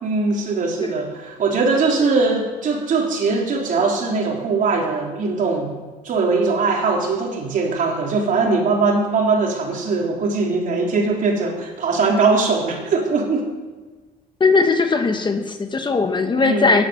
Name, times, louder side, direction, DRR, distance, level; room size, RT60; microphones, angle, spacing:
voice 1, 0.0-5.7 6.0-13.5 16.4-16.8, right 4 dB, 50° right, 0 dB, 3.7 m, -21 dB
voice 2, 14.4-16.8, left 4 dB, 25° left, 6 dB, 1.4 m, -19 dB
16.0 x 11.0 x 7.0 m, 1.3 s
cardioid pair, 110°, 17 cm